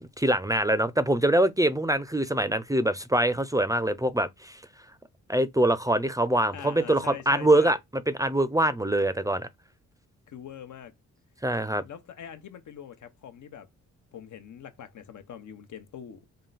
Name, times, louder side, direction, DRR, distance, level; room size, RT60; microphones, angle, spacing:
voice 1, 0.0-4.6 5.3-7.8 8.1-9.5 11.4-11.8, right 1 dB, 10° right, 0.6 m, -24 dB
voice 2, 6.5-7.8 10.3-10.9 11.8-13.7 14.1-16.3, left 9 dB, 65° left, 1.0 m, -43 dB
3.9 x 2.2 x 4.0 m
supercardioid pair, 50°, 32 cm